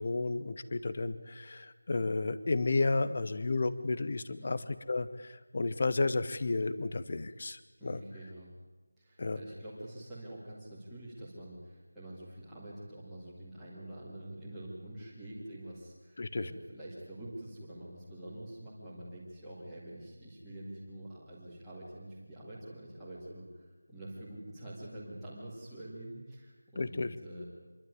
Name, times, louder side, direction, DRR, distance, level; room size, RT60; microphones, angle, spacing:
voice 1, 0.0-8.0 9.2-9.4 16.2-16.5 26.8-27.1 27.4-27.5, left 3 dB, 25° left, 14 dB, 0.7 m, -32 dB
voice 2, 7.8-8.5 9.0-27.4, right 1 dB, ahead, -13 dB, 2.2 m, -46 dB
26.0 x 12.0 x 9.6 m, 1.3 s
figure-of-eight pair, 180°, 0 cm